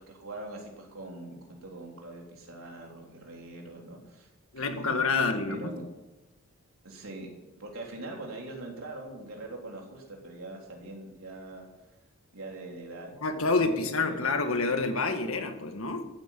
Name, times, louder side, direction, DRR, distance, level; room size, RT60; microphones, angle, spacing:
voice 1, 0.0-4.3 4.6-4.9 5.4-5.9 6.8-7.3 7.6-11.7 12.3-13.5 13.7-14.4, right 2 dB, 75° right, 0 dB, 3.8 m, -43 dB
voice 2, 4.5-5.7 13.2-16.0, left 3 dB, 70° left, 6 dB, 1.7 m, -28 dB
14.5 x 9.1 x 7.4 m, 1.0 s
head